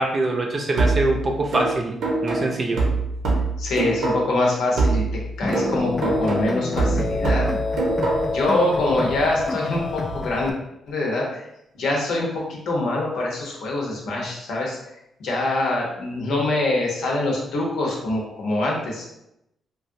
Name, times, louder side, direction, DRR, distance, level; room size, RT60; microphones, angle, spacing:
voice 1, 0.0-2.8, right 2 dB, 40° right, 1 dB, 0.6 m, -23 dB
sound 1, 0.8-4.5 4.8-8.5, right 3 dB, 85° right, 0.8 m, -24 dB
voice 2, 3.6-5.0 5.4-7.5 8.3-10.5 10.9-11.4 11.7-14.8 15.2-19.1, left 2 dB, 80° left, -2 dB, 0.8 m, -24 dB
sound 2, 5.4-10.5, left 3 dB, 30° left, 0.4 m, -27 dB
3.2 x 2.4 x 2.6 m, 0.84 s
cardioid pair, 95°, 0 cm